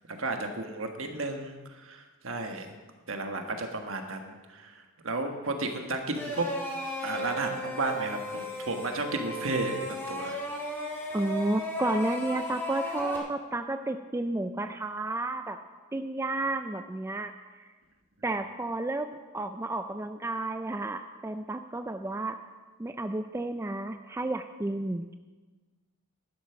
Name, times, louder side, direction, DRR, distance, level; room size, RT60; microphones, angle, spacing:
voice 1, 0.1-2.7 3.1-4.7 5.0-6.5 7.0-10.4, right 2 dB, 65° right, 4 dB, 1.5 m, -33 dB
sound 1, 6.1-13.2, equal, 10° left, 2.0 m, -35 dB
voice 2, 11.1-15.6 15.9-17.3 17.6-17.7 18.2-22.4 22.8-25.2, right 2 dB, 10° right, 7 dB, 0.4 m, -32 dB
11.5 x 11.5 x 5.8 m, 1.3 s
head